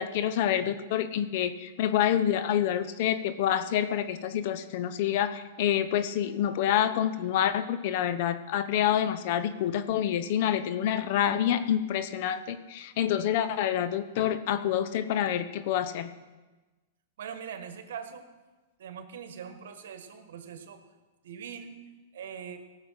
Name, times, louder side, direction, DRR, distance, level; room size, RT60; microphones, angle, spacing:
voice 1, 0.0-16.1, left 10 dB, 55° left, 12 dB, 0.9 m, -27 dB
voice 2, 17.2-18.2 18.8-20.8 21.2-21.7 22.1-22.6, right 7 dB, 75° right, 8 dB, 1.6 m, -41 dB
18.0 x 7.0 x 5.9 m, 1.2 s
hypercardioid pair, 135°, 0 cm